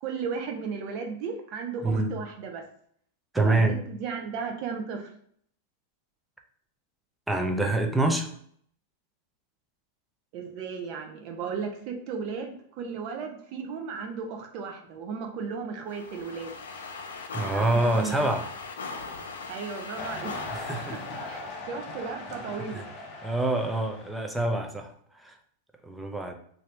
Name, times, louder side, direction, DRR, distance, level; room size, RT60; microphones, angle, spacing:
voice 1, 0.0-2.6 3.4-3.6 3.9-5.1 10.3-16.5 17.4-18.3 19.5-20.4 20.9-22.9, right 5 dB, 50° right, 3 dB, 0.6 m, -35 dB
voice 2, 1.8-2.2 3.3-3.8 7.3-8.3 17.3-18.5 20.5-21.0 22.7-22.8 23.2-24.9 25.2-25.3 25.8-26.3, right 2 dB, 5° right, 3 dB, 0.5 m, -26 dB
sound 1, 15.9-21.6, left 4 dB, 85° left, 0.5 m, -39 dB
sound 2, 20.0-24.3, left 3 dB, 45° left, 0.7 m, -39 dB
2.6 x 2.6 x 3.3 m, 0.63 s
hypercardioid pair, 110°, 0 cm